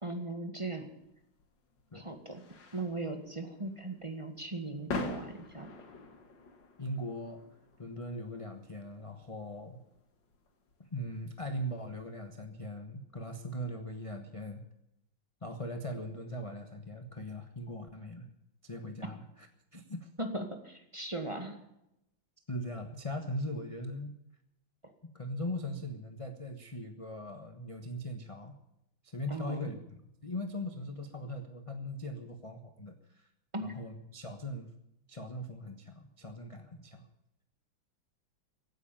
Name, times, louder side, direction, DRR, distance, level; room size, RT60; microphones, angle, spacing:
voice 1, 0.0-0.9 1.9-2.4 2.7-5.7 20.2-21.6 29.3-29.7 33.5-33.7, right 2 dB, 15° right, 5 dB, 1.8 m, -38 dB
sound 1, 1.0-12.3, left 3 dB, 65° left, 2.6 m, -46 dB
voice 2, 6.8-7.4 7.8-9.8 10.8-14.6 15.4-18.3 18.6-20.1 22.5-24.2 25.1-28.6 29.0-29.8 30.2-33.3 33.6-34.7 35.1-37.1, left 1 dB, 20° left, 5 dB, 1.1 m, -40 dB
16.5 x 9.5 x 9.0 m, 0.84 s
omnidirectional pair, 2.2 m